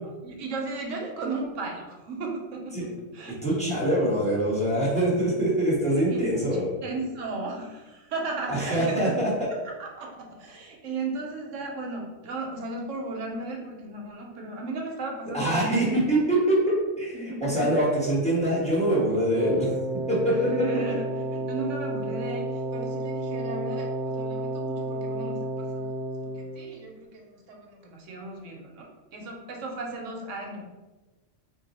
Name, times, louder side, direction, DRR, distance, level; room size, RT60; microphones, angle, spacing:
voice 1, 0.2-3.4 5.9-9.2 9.8-16.0 17.1-17.7 20.3-25.9 26.2-30.6, right 2 dB, 80° right, 0 dB, 1.0 m, -35 dB
voice 2, 3.4-6.7 8.5-9.3 15.3-19.7 20.1-20.5, right 1 dB, 5° left, -7 dB, 1.1 m, -24 dB
Wind instrument woodwind instrument, 19.3-26.6, right 2 dB, 35° left, 1.2 m, -31 dB
3.7 x 2.5 x 4.0 m, 1.2 s
omnidirectional pair, 1.3 m